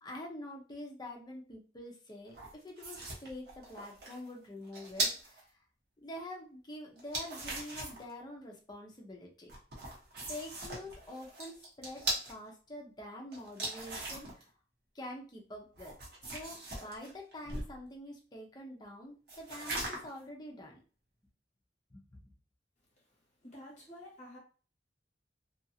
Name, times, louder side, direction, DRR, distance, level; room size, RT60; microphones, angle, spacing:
voice 1, 0.0-5.5 6.0-9.5 10.3-14.4 14.9-15.9 16.3-20.8 21.9-22.3, left 1 dB, 25° left, 0 dB, 0.6 m, -46 dB
sound 1, 2.3-5.4 7.0-8.1 9.5-12.3 13.3-14.4 15.8-17.8 19.3-20.2, right 2 dB, 60° right, 1.0 m, -39 dB
voice 2, 23.4-24.4, left 1 dB, 45° left, -3 dB, 1.1 m, -50 dB
2.6 x 2.4 x 2.7 m, 0.38 s
head